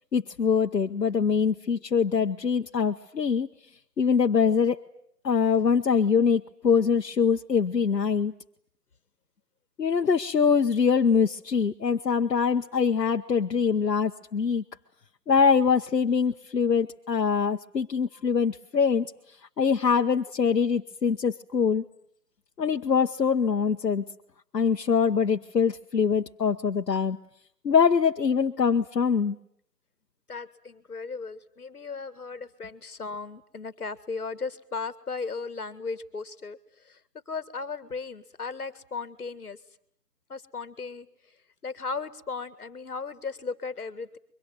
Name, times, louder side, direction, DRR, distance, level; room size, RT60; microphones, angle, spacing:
voice 1, 0.1-3.5 4.0-4.8 5.2-8.3 9.8-14.6 15.3-19.1 19.6-21.8 22.6-24.0 24.5-27.2 27.6-29.3, left 6 dB, 80° left, 5 dB, 1.1 m, -23 dB
voice 2, 30.3-37.0 37.3-39.6 40.3-41.4 41.6-44.2, left 4 dB, 65° left, 15 dB, 1.9 m, -36 dB
25.0 x 23.5 x 9.1 m, 0.69 s
figure-of-eight pair, 170°, 48 cm